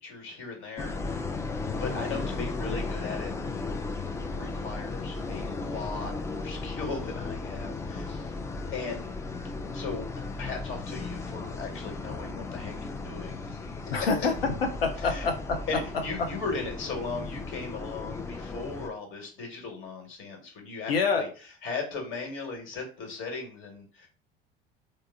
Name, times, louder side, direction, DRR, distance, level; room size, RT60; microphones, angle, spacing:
voice 1, 0.0-1.4 1.7-3.3 4.4-8.3 8.7-9.2 9.7-10.1 10.4-14.0 15.0-15.3 15.7-24.1, left 4 dB, 45° left, 2 dB, 1.3 m, -38 dB
sound 1, 0.8-18.9, left 3 dB, 10° left, 0.3 m, -35 dB
voice 2, 13.9-14.5 14.8-15.6 20.9-21.2, left 5 dB, 80° left, 5 dB, 0.7 m, -26 dB
3.5 x 2.0 x 3.4 m, 0.39 s
figure-of-eight pair, 70°, 29 cm